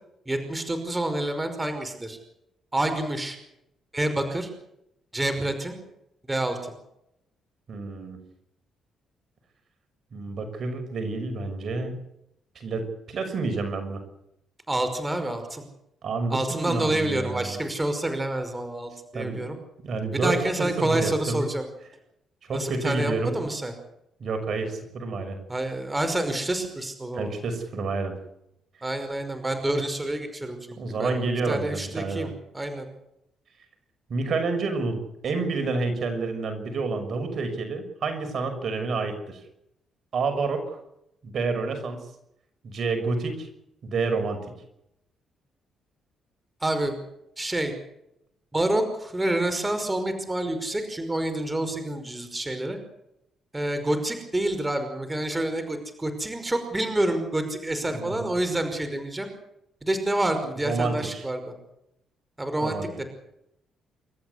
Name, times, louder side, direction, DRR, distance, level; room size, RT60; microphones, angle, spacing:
voice 1, 0.3-2.2 2.7-3.4 3.9-4.5 5.1-5.8 6.3-6.7 14.7-15.6 16.3-19.6 20.1-21.7 22.5-23.7 25.5-27.3 28.8-30.6 31.0-31.2 31.5-32.9 46.6-47.0 47.4-47.7 48.5-52.8 53.5-59.3 59.8-61.5 62.4-63.0, right 1 dB, 15° right, 7 dB, 5.4 m, -28 dB
voice 2, 7.7-8.2 10.1-12.0 12.5-14.0 16.0-17.6 19.1-19.4 19.8-21.4 22.5-23.3 24.2-25.4 27.1-28.1 30.8-32.3 34.1-39.4 40.1-40.6 41.2-42.1 42.6-43.5 43.8-44.4 57.9-58.3 60.6-61.2 62.6-62.9, right 3 dB, 55° right, 6 dB, 6.2 m, -29 dB
28.5 x 14.0 x 8.3 m, 0.80 s
cardioid pair, 90°, 0 cm